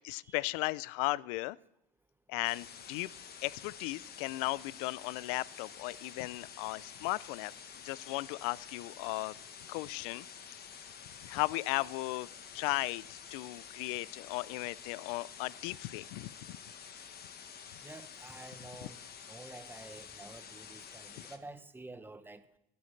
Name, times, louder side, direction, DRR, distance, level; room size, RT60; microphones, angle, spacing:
voice 1, 0.0-1.6 2.3-3.1 3.4-7.5 7.8-9.3 9.7-10.6 11.2-12.3 12.5-16.6, left 21 dB, 60° left, 22 dB, 0.5 m, -36 dB
sound 1, 2.4-21.4, left 7 dB, 30° left, 1.2 m, -50 dB
voice 2, 17.8-22.5, right 2 dB, 5° right, 11 dB, 0.8 m, -50 dB
25.5 x 9.9 x 3.3 m, 0.85 s
supercardioid pair, 115°, 31 cm